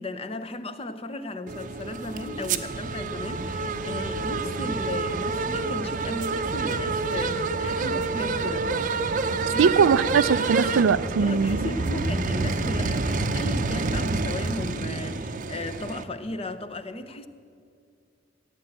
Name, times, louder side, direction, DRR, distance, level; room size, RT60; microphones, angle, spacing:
voice 1, 0.0-8.7 9.5-9.9 11.2-17.3, left 2 dB, 30° left, 0.7 m, -35 dB
sound 1, 1.5-16.0, right 3 dB, 40° right, 0.7 m, -28 dB
voice 2, 9.6-11.6, right 6 dB, 80° right, 0.4 m, -21 dB
15.5 x 9.0 x 8.9 m
head